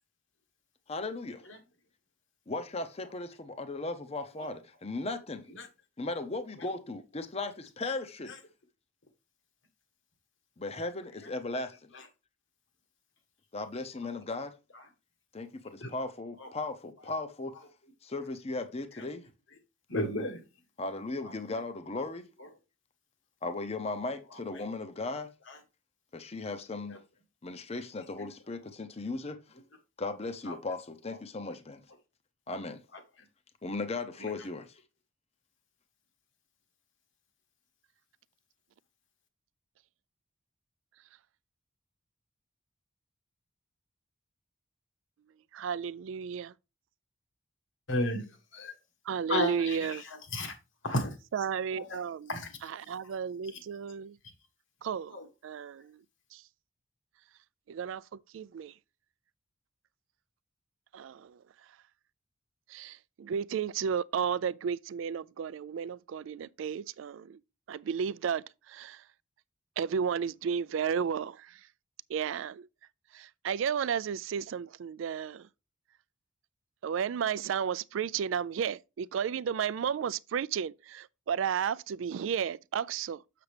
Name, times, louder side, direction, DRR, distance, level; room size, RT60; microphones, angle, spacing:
voice 1, 0.9-1.4 2.5-5.4 6.0-8.3 10.6-11.9 13.5-14.5 15.3-17.5 18.0-19.2 20.8-22.2 23.4-25.3 26.1-27.0 27.4-29.4 30.0-31.8 32.5-32.8 33.6-34.7, left 3 dB, 30° left, 0.7 m, -37 dB
voice 2, 19.9-20.4 21.2-21.3 22.4-22.5 24.3-24.6 25.5-25.6 26.9-27.0 30.4-30.5 32.9-33.0 34.2-34.5 47.9-48.3 48.5-48.7 49.3-50.5 50.8-51.2 51.7-52.0 52.3-52.6 53.5-53.6 55.1-55.3, left 1 dB, 70° left, 1.7 m, -34 dB
voice 3, 45.5-46.5 49.1-50.0 51.3-52.3 52.6-54.2 54.8-55.2 55.4-56.0 56.3-56.4 57.7-58.7 60.9-61.4 62.7-67.4 67.7-69.0 69.8-71.6 72.1-72.7 73.1-75.5 76.8-83.2, right 7 dB, 75° right, 0.3 m, -33 dB
7.0 x 6.7 x 3.3 m
head